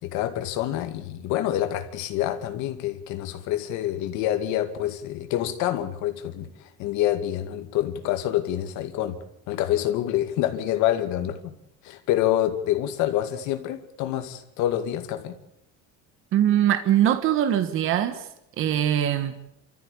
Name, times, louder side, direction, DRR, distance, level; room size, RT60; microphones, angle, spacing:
voice 1, 0.0-9.2 9.5-11.5 11.8-15.3, left 12 dB, 70° left, 7 dB, 2.3 m, -27 dB
voice 2, 16.3-18.3 18.6-19.3, right 11 dB, 45° right, 9 dB, 1.4 m, -22 dB
28.5 x 14.0 x 8.5 m, 0.82 s
cardioid pair, 175°, 30 cm